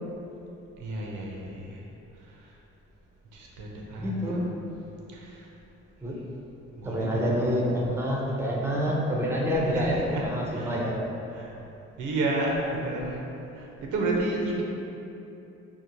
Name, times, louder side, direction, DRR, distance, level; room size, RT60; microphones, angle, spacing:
voice 1, 0.8-1.8 2.3-2.5 3.3-4.6 5.1-5.5 6.8-7.2 9.6-10.9 11.3-11.5 12.0-13.2 13.5-14.6, right 2 dB, 80° right, -2 dB, 0.5 m, -31 dB
voice 2, 4.0-4.4 6.0-6.2 6.8-11.0, equal, 10° right, -3 dB, 0.4 m, -27 dB
2.7 x 2.0 x 2.9 m, 2.9 s
cardioid pair, 90°, 30 cm